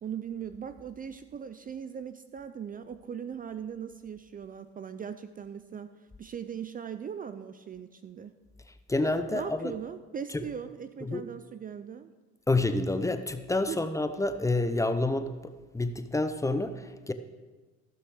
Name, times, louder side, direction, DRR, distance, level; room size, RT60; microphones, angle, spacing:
voice 1, 0.0-5.9 6.2-8.3 9.3-12.1 13.7-13.8, right 8 dB, 30° right, 11 dB, 0.5 m, -39 dB
voice 2, 8.9-9.7 11.0-11.2 12.5-15.3 15.7-17.1, left 2 dB, 10° left, 9 dB, 0.7 m, -28 dB
14.5 x 6.7 x 6.4 m, 1.3 s
cardioid pair, 110°, 31 cm